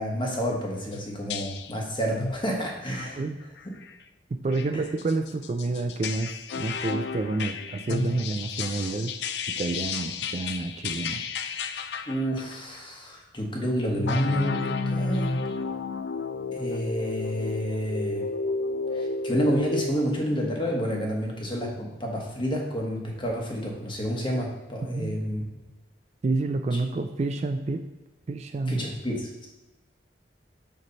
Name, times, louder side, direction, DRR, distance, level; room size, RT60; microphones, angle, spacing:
voice 1, 0.0-3.2 12.1-15.3 16.5-18.3 18.9-25.4 28.7-29.5, equal, 30° left, -1 dB, 1.2 m, -29 dB
sound 1, 0.9-1.0 1.3-1.8 2.2-2.4 2.9-3.2 3.6-3.9 4.5-12.5 13.9-19.9, left 3 dB, 65° left, 0.4 m, -31 dB
voice 2, 4.3-9.1 9.5-11.2 24.8-25.1 26.2-27.8 28.3-28.8, right 3 dB, 40° right, 7 dB, 0.3 m, -29 dB
6.8 x 3.2 x 5.3 m, 1.0 s
head